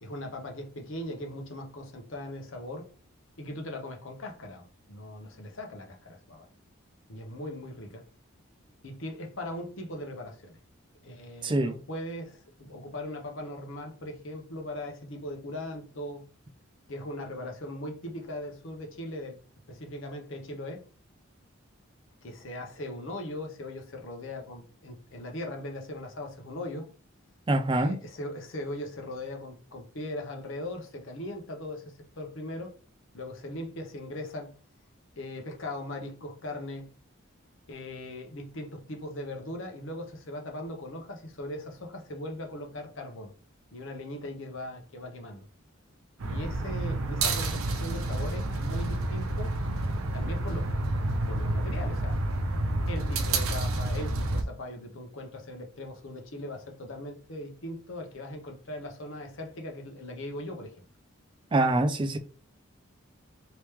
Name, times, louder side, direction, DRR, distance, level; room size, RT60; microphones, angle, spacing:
voice 1, 0.0-2.9 3.4-6.5 7.1-8.0 8.8-10.6 11.0-16.3 16.9-19.4 19.7-20.8 22.2-26.9 27.7-32.7 33.1-34.5 35.2-36.9 37.7-43.3 43.7-45.5 46.2-49.6 50.1-50.7 51.3-52.2 52.9-60.7, left 1 dB, 65° left, 0.8 m, -39 dB
voice 2, 11.4-11.8 27.5-28.0 61.5-62.2, right 2 dB, 20° right, 0.3 m, -25 dB
sound 1, 46.2-54.4, right 2 dB, 85° right, 0.6 m, -29 dB
3.1 x 2.9 x 3.3 m
head